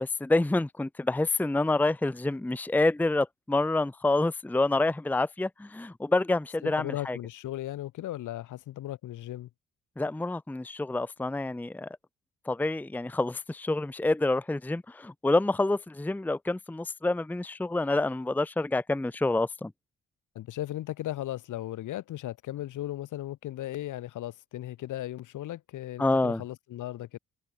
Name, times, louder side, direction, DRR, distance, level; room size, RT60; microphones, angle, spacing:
voice 1, 0.0-7.2 10.0-11.9 12.5-19.7 26.0-26.4, left 2 dB, 5° left, 0.7 m, -27 dB
voice 2, 6.6-9.5 20.3-27.2, left 14 dB, 80° left, 6.6 m, -36 dB
cardioid pair, 90°, 30 cm